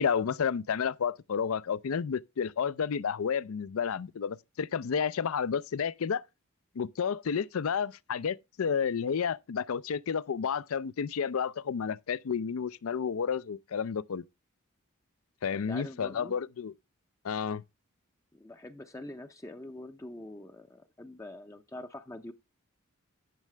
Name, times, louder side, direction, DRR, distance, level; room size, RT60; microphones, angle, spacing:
voice 1, 0.0-6.2 6.8-14.2 15.4-16.7 17.2-17.6, left 6 dB, 75° left, 0.4 m, -31 dB
voice 2, 15.5-16.3 18.3-22.3, left 1 dB, 15° left, 0.5 m, -44 dB
11.0 x 7.4 x 3.3 m
head